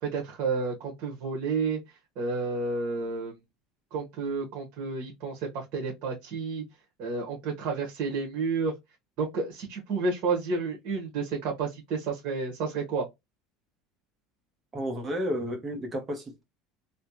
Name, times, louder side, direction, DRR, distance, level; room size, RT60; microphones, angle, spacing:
voice 1, 0.0-1.8 2.2-3.3 3.9-6.6 7.0-8.7 9.2-13.1, right 4 dB, 55° right, 1.5 m, -30 dB
voice 2, 14.7-16.4, equal, 25° right, 1.1 m, -32 dB
3.3 x 2.9 x 2.9 m
supercardioid pair, 120°, 0 cm